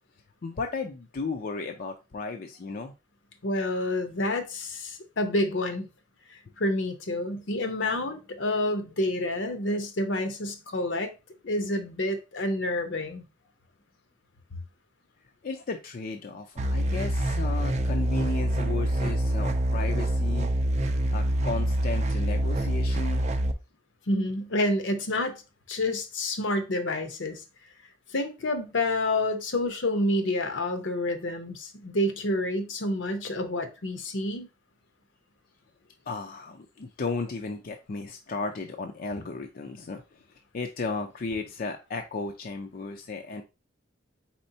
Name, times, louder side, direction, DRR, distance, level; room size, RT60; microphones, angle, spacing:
voice 1, 0.4-2.9 15.4-20.5 21.1-23.2 36.1-40.0 40.5-43.4, left 3 dB, 50° left, 0.5 m, -34 dB
voice 2, 3.4-5.9 6.3-11.1 11.5-13.2 24.1-25.4 25.7-27.4 28.1-34.5, left 1 dB, 70° left, 0.8 m, -28 dB
sound 1, 16.6-23.5, right 1 dB, 35° right, 0.4 m, -26 dB
4.3 x 4.3 x 2.7 m
head